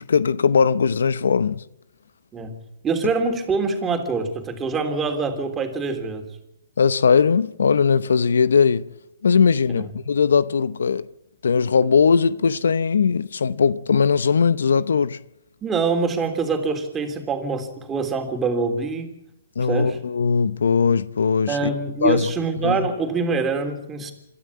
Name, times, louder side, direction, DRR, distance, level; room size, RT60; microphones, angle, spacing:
voice 1, 0.0-1.6 6.8-8.8 9.2-11.1 11.4-15.2 19.6-21.7 22.0-22.3 22.6-22.9, left 6 dB, 80° left, 0.7 m, -19 dB
voice 2, 2.8-6.3 9.7-9.9 15.6-19.1 19.7-20.0 21.5-24.1, right 4 dB, 15° right, 3.3 m, -25 dB
27.0 x 13.0 x 8.5 m
hypercardioid pair, 135°, 0 cm